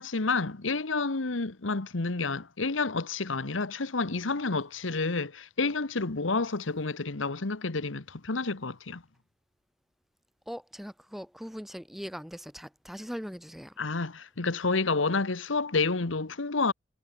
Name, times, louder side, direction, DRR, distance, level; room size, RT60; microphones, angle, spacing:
voice 1, 0.0-9.0 13.8-16.7, left 3 dB, 85° left, 1.3 m, -29 dB
voice 2, 10.5-13.7, equal, ahead, 3.0 m, -40 dB
head